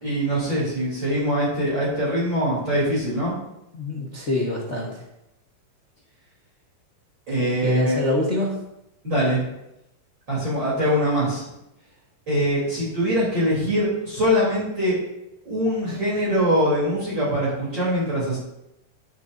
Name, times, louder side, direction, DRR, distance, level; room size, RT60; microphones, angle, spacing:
voice 1, 0.0-3.4 7.3-8.0 9.0-9.4 10.3-11.5 12.3-15.0 15.4-18.4, equal, 35° right, -8 dB, 4.0 m, -23 dB
voice 2, 3.7-5.0 7.6-8.6, left 2 dB, 45° left, -4 dB, 0.9 m, -25 dB
18.5 x 8.2 x 2.7 m, 0.86 s
omnidirectional pair, 3.9 m